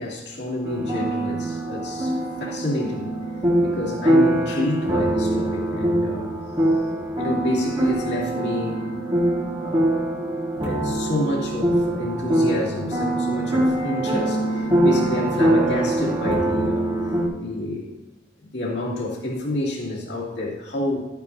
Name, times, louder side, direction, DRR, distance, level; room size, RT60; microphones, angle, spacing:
voice 1, 0.0-3.1 3.6-6.3 7.1-8.8 9.6-9.9 10.6-16.9 17.4-18.0 18.5-21.0, left 1 dB, 60° left, -4 dB, 2.6 m, -28 dB
sound 1, 0.6-17.3, right 1 dB, 25° right, 1.6 m, -23 dB
12.5 x 9.2 x 2.7 m, 1.2 s
head